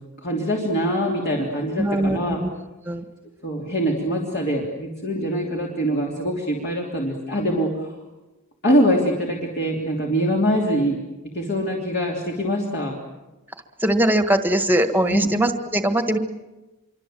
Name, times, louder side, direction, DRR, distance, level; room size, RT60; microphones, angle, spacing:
voice 1, 0.2-2.4 3.4-7.7 8.6-11.0 11.3-12.9 15.1-15.3, equal, 45° left, -2 dB, 3.2 m, -23 dB
voice 2, 1.8-2.5 2.9-3.0 13.8-16.2, right 1 dB, 10° right, 7 dB, 1.6 m, -21 dB
26.0 x 24.0 x 7.7 m, 1.1 s
head